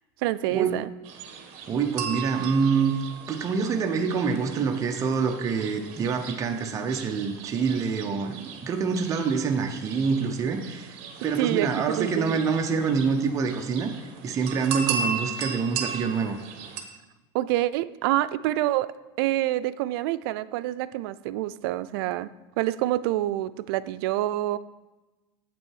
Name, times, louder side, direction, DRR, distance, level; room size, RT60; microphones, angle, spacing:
voice 1, 0.2-0.9 11.4-12.4 17.3-18.9 19.2-22.3 22.6-24.6, right 15 dB, 80° right, 16 dB, 0.4 m, -27 dB
sound 1, 1.0-16.8, right 6 dB, 60° right, 1.1 m, -37 dB
voice 2, 1.7-2.9 3.3-11.0 11.2-13.9 14.2-16.4, right 5 dB, 25° right, 4 dB, 0.7 m, -26 dB
8.2 x 6.0 x 4.7 m, 1.1 s
supercardioid pair, 140°, 12 cm